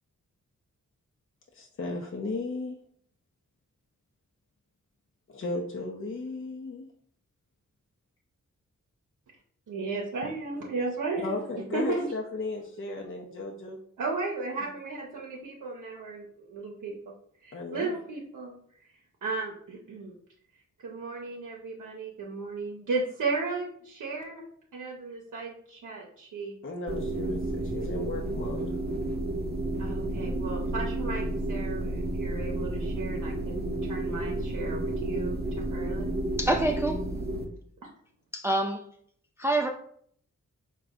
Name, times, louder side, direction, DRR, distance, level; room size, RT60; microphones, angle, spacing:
voice 1, 1.5-2.8 5.3-6.9 11.2-13.8 17.5-18.0 26.6-28.7, left 2 dB, 40° left, 1 dB, 0.6 m, -35 dB
voice 2, 9.7-11.4 11.7-12.1 14.0-16.9 17.4-18.5 19.2-20.1 20.8-26.6 29.8-36.1, right 3 dB, 70° right, -2 dB, 0.7 m, -35 dB
sound 1, 26.9-37.4, right 1 dB, 30° right, 0.7 m, -31 dB
voice 3, 36.4-37.0 38.3-38.8 39.4-39.7, right 1 dB, 10° right, 2 dB, 0.4 m, -26 dB
3.8 x 2.3 x 3.5 m, 0.63 s
cardioid pair, 45°, 32 cm